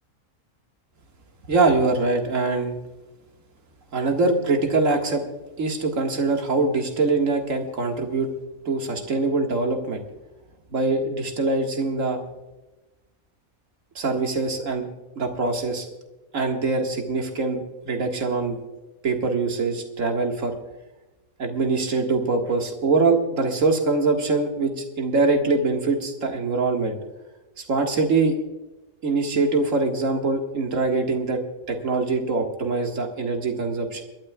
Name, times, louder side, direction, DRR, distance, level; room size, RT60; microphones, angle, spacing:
voice 1, 1.5-2.8 3.9-5.2 5.6-8.3 8.7-10.0 10.7-12.2 14.0-14.9 15.2-15.9 16.3-18.6 19.0-20.5 21.4-27.0 27.6-28.4 29.0-31.4 31.7-34.0, right 3 dB, 65° right, 2 dB, 2.1 m, -23 dB
29.5 x 12.0 x 2.3 m, 1.1 s
omnidirectional pair, 1.5 m